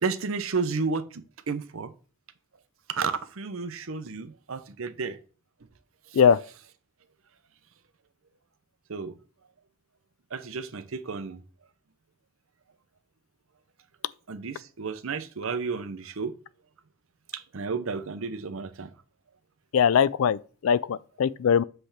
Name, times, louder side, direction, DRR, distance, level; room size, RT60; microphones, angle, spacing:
voice 1, 0.0-1.9 2.9-5.2 6.1-6.2 8.9-9.1 10.3-11.4 14.3-16.3 17.3-18.9, right 4 dB, 65° right, 0.7 m, -32 dB
voice 2, 19.7-21.6, left 7 dB, 65° left, 0.3 m, -21 dB
7.8 x 3.3 x 5.9 m
head